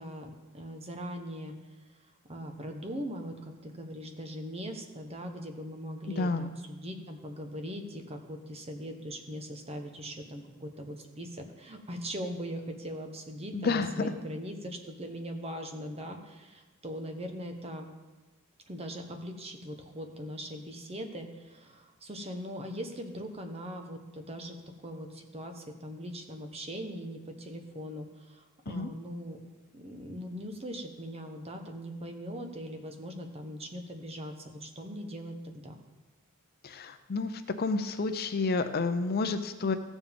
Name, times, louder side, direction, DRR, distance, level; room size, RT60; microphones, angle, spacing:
voice 1, 0.0-1.5 2.3-17.9 18.7-24.6 24.8-29.4 29.7-35.8, equal, 30° right, 5 dB, 1.0 m, -40 dB
voice 2, 6.2-6.5 13.5-14.1 28.7-28.9 36.6-37.3 37.6-39.7, left 3 dB, 50° left, 9 dB, 0.6 m, -30 dB
15.0 x 7.2 x 3.6 m, 1.2 s
head